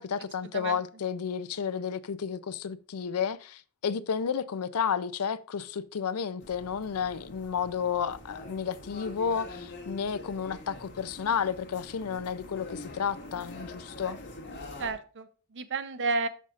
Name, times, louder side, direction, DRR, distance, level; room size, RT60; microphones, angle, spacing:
voice 1, 0.0-14.2, left 7 dB, 90° left, 0.5 m, -32 dB
sound 1, 6.4-14.9, left 2 dB, 55° left, 1.9 m, -44 dB
voice 2, 14.8-16.3, right 3 dB, 55° right, 0.7 m, -31 dB
12.5 x 5.5 x 2.5 m
head